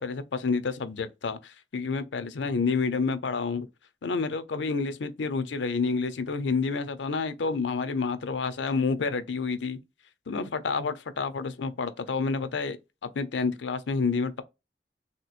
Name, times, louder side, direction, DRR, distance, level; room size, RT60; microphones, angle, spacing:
voice 1, 0.0-3.7 4.0-9.8 10.3-12.8 13.1-14.4, left 4 dB, 75° left, 0.5 m, -29 dB
3.4 x 2.9 x 2.4 m
head